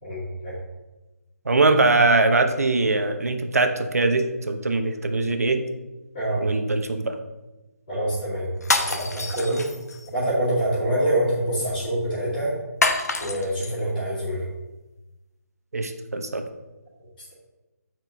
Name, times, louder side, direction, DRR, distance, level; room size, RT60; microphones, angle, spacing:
voice 1, 0.0-0.6 6.1-6.4 7.9-8.5 8.8-9.6 10.1-12.5 13.2-14.5, right 1 dB, 20° left, -15 dB, 2.5 m, -25 dB
voice 2, 1.4-5.6 6.4-7.2 15.7-16.4, right 3 dB, 65° right, 6 dB, 0.9 m, -22 dB
sound 1, 8.6-10.1 12.8-13.7, left 3 dB, 75° left, 0.9 m, -26 dB
7.8 x 4.6 x 4.0 m, 1.1 s
hypercardioid pair, 180°, 9 cm